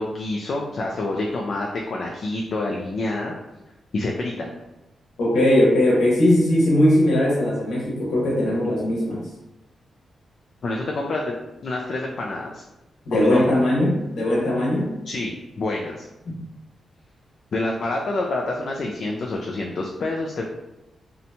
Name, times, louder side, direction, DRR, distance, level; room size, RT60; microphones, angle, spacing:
voice 1, 0.0-3.4 3.9-4.5 10.6-11.3 11.6-12.6 13.1-13.5 15.1-16.1 17.5-20.5, left 2 dB, 50° left, -1 dB, 0.3 m, -27 dB
voice 2, 5.2-9.2 13.1-14.9 16.2-16.3, left 1 dB, 90° left, -5 dB, 1.0 m, -19 dB
2.7 x 2.1 x 2.7 m, 0.95 s
wide cardioid pair, 135°, 0 cm